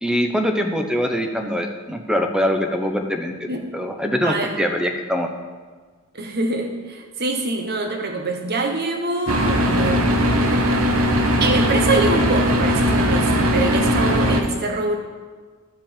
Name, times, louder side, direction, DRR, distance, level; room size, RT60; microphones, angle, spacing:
voice 1, 0.0-3.5 3.7-5.3, equal, 5° right, 4 dB, 0.8 m, -23 dB
voice 2, 4.2-4.6 6.1-10.1 11.4-15.0, right 2 dB, 50° right, 3 dB, 1.3 m, -24 dB
sound 1, 9.3-14.4, equal, 75° right, 1.1 m, -19 dB
12.5 x 5.1 x 7.4 m, 1.5 s
head